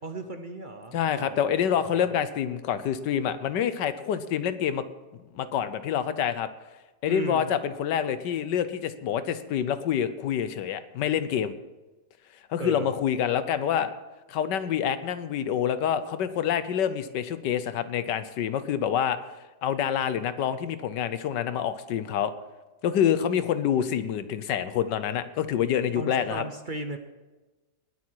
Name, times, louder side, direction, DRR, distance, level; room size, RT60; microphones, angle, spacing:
voice 1, 0.0-2.1 7.1-7.5 12.6-12.9 25.9-27.0, right 2 dB, 45° right, 7 dB, 0.7 m, -36 dB
voice 2, 0.9-4.8 5.3-6.5 7.0-11.5 12.5-13.9 14.3-19.2 19.6-22.3 22.8-26.4, left 9 dB, 80° left, 13 dB, 1.5 m, -27 dB
19.5 x 8.5 x 4.6 m, 1.1 s
omnidirectional pair, 1.9 m